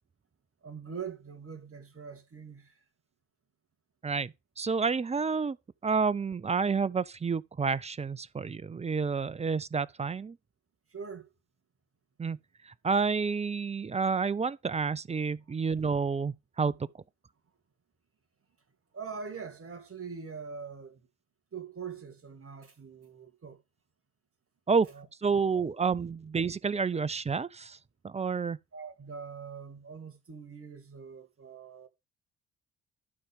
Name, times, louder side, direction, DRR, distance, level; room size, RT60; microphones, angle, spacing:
voice 1, 0.6-2.8 10.9-11.3 18.9-21.1 21.5-23.6 24.8-25.6 26.9-27.0 28.7-31.9, right 6 dB, 35° right, 2.3 m, -43 dB
voice 2, 4.0-5.6 5.8-10.4 12.2-12.4 12.8-16.8 24.7-24.9 25.2-27.8 28.0-28.6, right 5 dB, 15° right, 0.5 m, -29 dB
12.0 x 4.4 x 5.1 m
hypercardioid pair, 45°, 38 cm